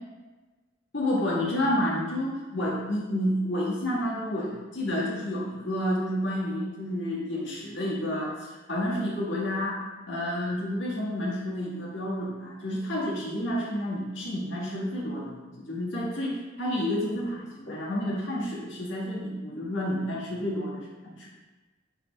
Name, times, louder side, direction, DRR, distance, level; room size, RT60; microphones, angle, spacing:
voice 1, 0.9-9.8 10.1-21.3, left 1 dB, 75° left, -5 dB, 1.6 m, -30 dB
9.7 x 3.5 x 3.2 m, 1.2 s
head